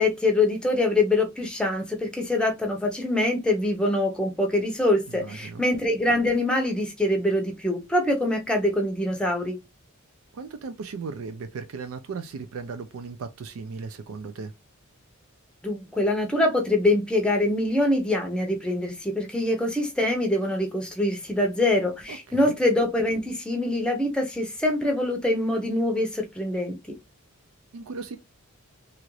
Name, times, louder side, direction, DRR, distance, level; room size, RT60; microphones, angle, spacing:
voice 1, 0.0-9.6 15.6-27.0, left 1 dB, 5° left, 0.6 m, -24 dB
voice 2, 5.1-5.6 10.3-14.5 22.1-22.6 27.7-28.2, right 4 dB, 75° right, 0.4 m, -37 dB
2.9 x 2.5 x 3.0 m
head